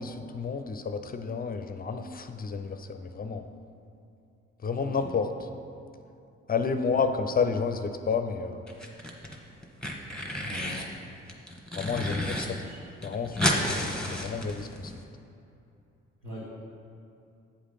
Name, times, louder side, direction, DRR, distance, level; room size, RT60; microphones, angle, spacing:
voice 1, 0.0-3.5 4.6-5.3 6.5-8.7 11.7-12.5 13.0-14.9, left 5 dB, 25° left, 8 dB, 0.6 m, -30 dB
sound 1, 8.7-9.4 9.6-10.9 11.3-12.5 12.7-12.8 13.0-14.9, left 1 dB, ahead, 1.3 m, -31 dB
voice 2, 12.1-12.8 16.2-16.4, equal, 90° right, -13 dB, 1.2 m, -42 dB
8.5 x 4.9 x 5.7 m, 2.7 s
figure-of-eight pair, 40°, 38 cm